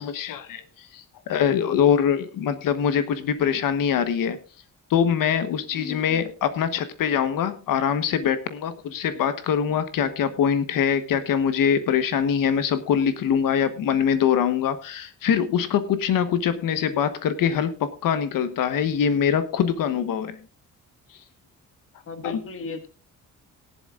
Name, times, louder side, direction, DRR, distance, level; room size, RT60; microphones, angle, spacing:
voice 1, 0.0-4.4 4.9-20.4 22.2-22.3, left 8 dB, 85° left, 1.2 m, -23 dB
voice 2, 5.7-6.3 22.0-22.9, left 4 dB, 40° left, 1.6 m, -36 dB
17.5 x 11.5 x 2.4 m
wide cardioid pair, 175°, 32 cm